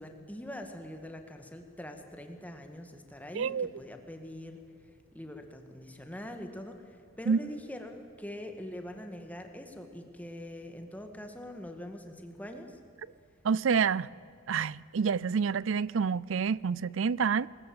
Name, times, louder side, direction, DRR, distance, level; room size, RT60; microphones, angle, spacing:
voice 1, 0.0-4.6 5.1-12.8, left 1 dB, 5° left, 1.9 m, -43 dB
voice 2, 3.3-3.7 7.3-7.4 13.4-14.1 14.5-17.5, right 6 dB, 70° right, 0.4 m, -28 dB
20.5 x 20.5 x 7.8 m
head